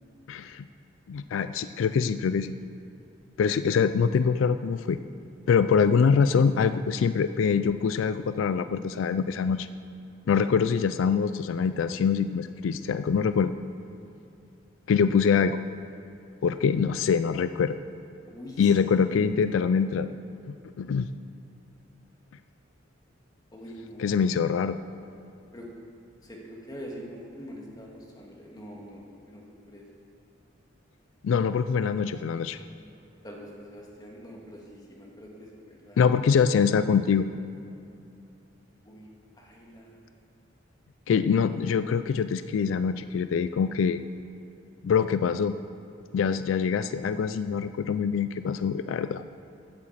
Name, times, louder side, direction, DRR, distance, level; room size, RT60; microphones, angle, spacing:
voice 1, 0.3-0.6 1.1-2.6 3.4-5.0 5.5-9.7 10.3-13.5 14.9-15.6 16.4-17.8 18.6-20.1 20.5-21.1 24.0-24.8 31.2-32.6 36.0-37.3 41.1-44.0 44.8-45.5 46.1-49.2, left 6 dB, 90° left, 12 dB, 0.3 m, -24 dB
voice 2, 18.3-19.9 23.5-24.2 25.5-25.7 26.2-29.0 29.3-29.8 33.2-36.0 38.8-39.1 39.4-40.0, equal, 20° left, -2 dB, 1.7 m, -44 dB
8.7 x 7.3 x 7.8 m, 2.6 s
head